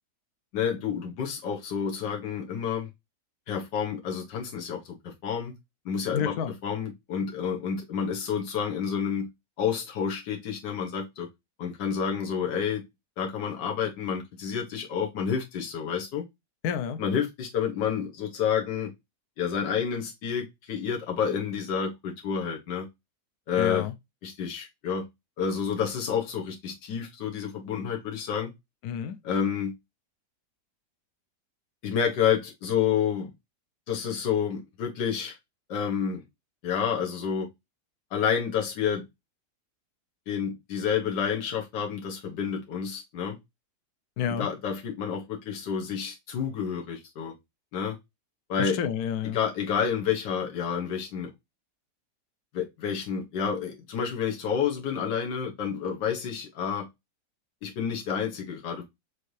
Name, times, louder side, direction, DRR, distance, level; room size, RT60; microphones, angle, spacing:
voice 1, 0.5-2.9 3.5-5.5 5.8-9.3 9.6-11.3 11.6-12.8 13.2-16.2 17.0-18.9 19.4-22.9 23.5-23.9 24.2-25.1 25.4-28.5 29.2-29.7 31.8-33.3 33.9-35.4 35.7-36.2 36.6-37.5 38.1-39.1 40.3-43.4 44.3-47.3 47.7-48.0 48.5-48.8 49.3-51.3 52.5-56.9 57.6-58.8, left 7 dB, 90° left, 1.7 m, -29 dB
voice 2, 6.1-6.5 16.6-17.0 23.6-23.9 28.8-29.2 44.2-44.5 48.6-49.4, left 8 dB, 70° left, 1.1 m, -29 dB
6.3 x 2.7 x 3.1 m
omnidirectional pair, 1.8 m